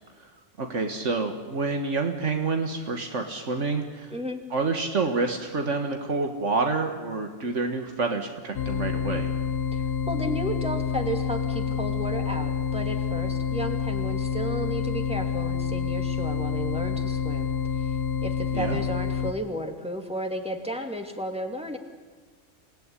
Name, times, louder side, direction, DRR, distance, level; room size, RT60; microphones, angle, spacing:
voice 1, 0.6-4.1 4.5-9.3 18.5-18.8, right 3 dB, 75° right, 4 dB, 2.0 m, -28 dB
voice 2, 4.1-4.4 9.7-18.0 18.2-21.8, right 1 dB, 5° right, 2 dB, 2.7 m, -33 dB
sound 1, 8.5-19.3, left 7 dB, 60° left, 1.1 m, -28 dB
28.0 x 17.5 x 9.9 m, 1.4 s
omnidirectional pair, 1.3 m